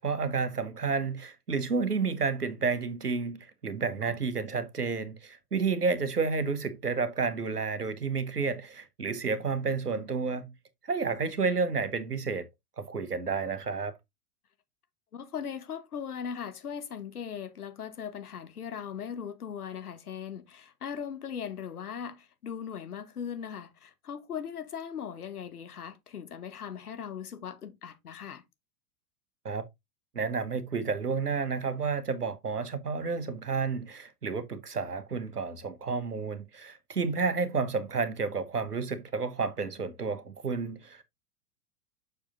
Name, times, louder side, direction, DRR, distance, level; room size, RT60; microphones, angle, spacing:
voice 1, 0.0-10.5 10.9-12.5 12.8-13.9 29.4-29.6 30.1-41.0, right 4 dB, 90° right, 1.1 m, -31 dB
voice 2, 15.1-28.4, left 7 dB, 75° left, 1.3 m, -39 dB
7.2 x 6.7 x 2.6 m
figure-of-eight pair, 95°, 45 cm